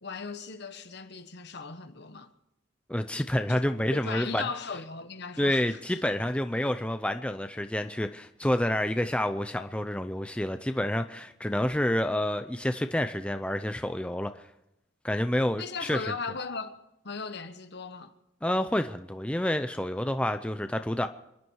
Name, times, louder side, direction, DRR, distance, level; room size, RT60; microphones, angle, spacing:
voice 1, 0.0-2.3 3.5-3.6 3.9-5.8 15.6-16.8 17.0-18.1, left 4 dB, 60° left, 1.3 m, -37 dB
voice 2, 2.9-4.4 5.4-14.3 15.0-16.1 18.4-21.1, left 1 dB, 5° left, 0.6 m, -28 dB
28.0 x 11.0 x 4.7 m
head